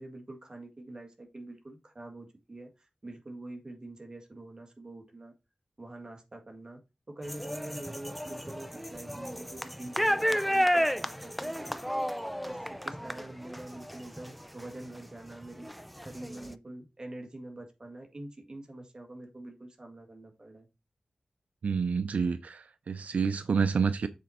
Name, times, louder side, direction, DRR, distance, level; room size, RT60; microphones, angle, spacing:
voice 1, 0.0-5.3 5.8-6.8 7.1-15.7 16.0-20.7, right 2 dB, 35° right, 1.9 m, -45 dB
sound 1, 7.2-15.0 15.4-16.5, equal, ahead, 0.5 m, -32 dB
voice 2, 21.6-24.1, right 5 dB, 85° right, 0.5 m, -28 dB
7.4 x 4.4 x 4.2 m
wide cardioid pair, 95°, 2 cm